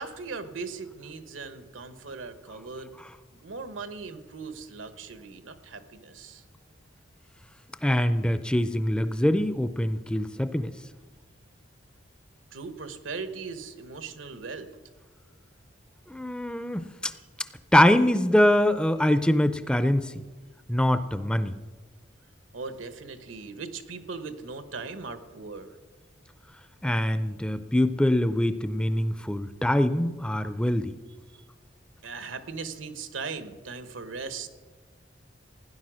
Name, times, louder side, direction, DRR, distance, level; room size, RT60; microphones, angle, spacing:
voice 1, 0.0-3.0 3.3-6.4 12.5-14.7 22.5-25.8 31.3-31.4 32.0-34.5, right 4 dB, 85° right, 10 dB, 1.2 m, -39 dB
voice 2, 7.8-10.7 16.1-17.1 17.7-20.1 20.7-21.6 26.8-30.9, left 1 dB, 5° left, 12 dB, 0.4 m, -24 dB
16.0 x 10.0 x 6.2 m, 1.4 s
head